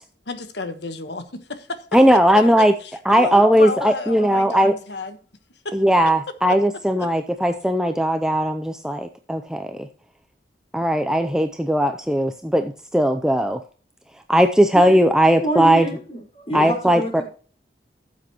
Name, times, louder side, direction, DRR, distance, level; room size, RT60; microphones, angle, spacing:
voice 1, 0.3-1.9 2.1-5.2 5.6-5.8 7.0-7.1, left 3 dB, 70° left, 1.3 m, -32 dB
voice 2, 1.9-2.7 3.1-4.7 5.7-9.9 10.7-13.6 14.3-15.9 16.5-17.2, equal, 5° right, 0.5 m, -18 dB
voice 3, 15.4-17.2, right 1 dB, 30° left, 4.3 m, -27 dB
13.5 x 7.6 x 3.0 m
head